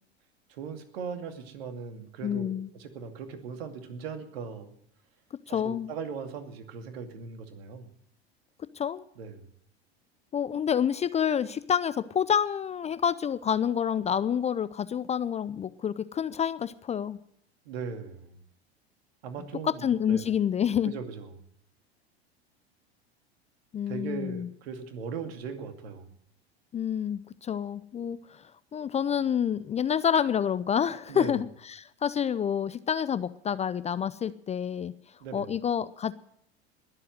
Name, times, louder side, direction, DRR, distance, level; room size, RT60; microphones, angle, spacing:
voice 1, 0.5-4.7 5.5-7.9 9.2-9.5 17.6-18.4 19.2-20.4 20.9-21.5 23.9-26.1 31.1-31.4 35.2-35.5, right 6 dB, 65° right, 6 dB, 2.5 m, -39 dB
voice 2, 2.2-2.7 5.5-5.9 8.8-9.0 10.3-17.2 19.6-20.9 23.7-24.5 26.7-28.4 28.7-34.9 35.3-36.1, left 8 dB, 20° left, 16 dB, 0.5 m, -28 dB
21.0 x 7.7 x 7.7 m, 0.70 s
hypercardioid pair, 85°, 32 cm